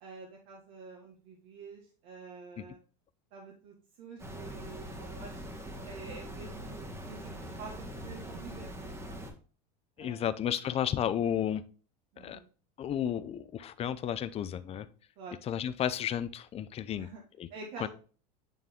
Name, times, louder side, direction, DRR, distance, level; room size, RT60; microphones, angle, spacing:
voice 1, 0.0-2.8 3.3-5.4 5.8-9.3 10.0-10.3 12.1-12.5 15.2-15.4 16.9-17.2 17.5-17.9, right 4 dB, 60° right, -2 dB, 1.7 m, -48 dB
sound 1, 4.2-9.3, equal, 15° right, 1.8 m, -42 dB
voice 2, 10.0-11.6 12.2-12.4 12.8-14.9 15.4-17.1 17.4-17.5 17.8-17.9, left 10 dB, 30° left, 15 dB, 0.5 m, -32 dB
9.1 x 3.6 x 3.5 m, 0.39 s
supercardioid pair, 120°, 21 cm